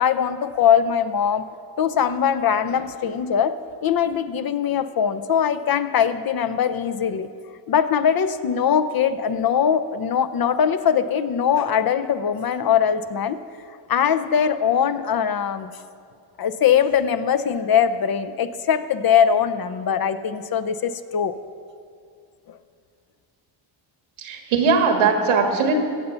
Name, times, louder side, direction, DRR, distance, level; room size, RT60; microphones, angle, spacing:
voice 1, 0.0-1.5 1.8-7.3 7.7-13.4 13.9-15.7 16.4-21.4 22.5-22.6, left 8 dB, 50° left, 11 dB, 0.7 m, -21 dB
voice 2, 24.2-25.7, right 5 dB, 85° right, 4 dB, 1.7 m, -19 dB
15.0 x 6.8 x 5.6 m, 2.3 s
cardioid pair, 70°, 48 cm